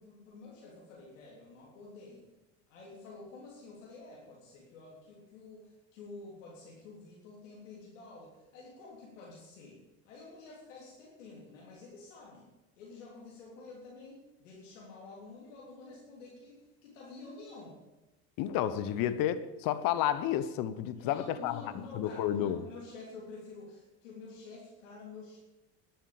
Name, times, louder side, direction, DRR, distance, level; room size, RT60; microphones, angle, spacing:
voice 1, 0.0-2.2 2.7-9.8 10.1-12.5 12.8-17.8 18.9-19.1 21.0-25.4, left 3 dB, 85° left, 3.5 m, -49 dB
voice 2, 18.4-21.6 21.9-22.6, left 11 dB, 65° left, 1.1 m, -31 dB
11.5 x 9.3 x 8.6 m
supercardioid pair, 85°, 37 cm